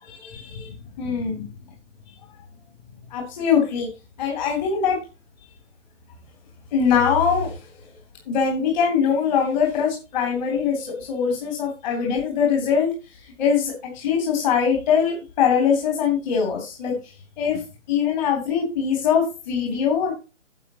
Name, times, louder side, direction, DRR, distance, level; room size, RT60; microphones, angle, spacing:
voice 1, 0.0-1.5 3.1-3.9 4.2-5.0 6.7-7.7 8.3-16.9 17.4-17.6 17.9-20.1, left 7 dB, 35° left, 1 dB, 3.5 m, -22 dB
12.0 x 8.2 x 3.0 m, 0.30 s
figure-of-eight pair, 135°, 38 cm